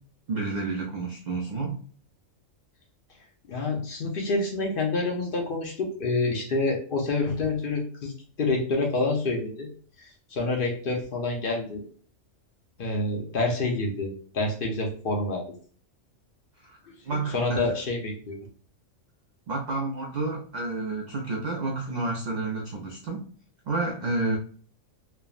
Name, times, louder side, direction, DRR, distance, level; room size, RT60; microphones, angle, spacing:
voice 1, 0.3-1.8 16.6-16.8 17.0-17.7 19.5-23.3 23.7-24.4, right 3 dB, 90° right, 0 dB, 0.3 m, -30 dB
voice 2, 3.5-9.7 10.0-11.8 12.8-15.5 16.8-18.4, left 2 dB, 55° left, 0 dB, 0.6 m, -28 dB
3.3 x 2.0 x 2.3 m, 0.43 s
omnidirectional pair, 1.3 m